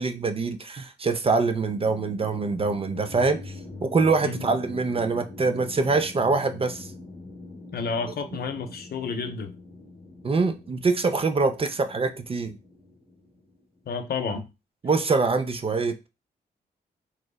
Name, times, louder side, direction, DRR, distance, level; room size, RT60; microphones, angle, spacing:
voice 1, 0.0-3.5 3.8-6.9 10.2-12.6 14.8-16.1, right 4 dB, 30° right, 0.4 m, -24 dB
sound 1, 1.7-13.8, left 2 dB, 30° left, 0.8 m, -43 dB
voice 2, 4.2-4.5 7.7-9.5 13.9-14.5, left 5 dB, 60° left, 0.5 m, -31 dB
2.8 x 2.0 x 2.2 m
supercardioid pair, 50°, 18 cm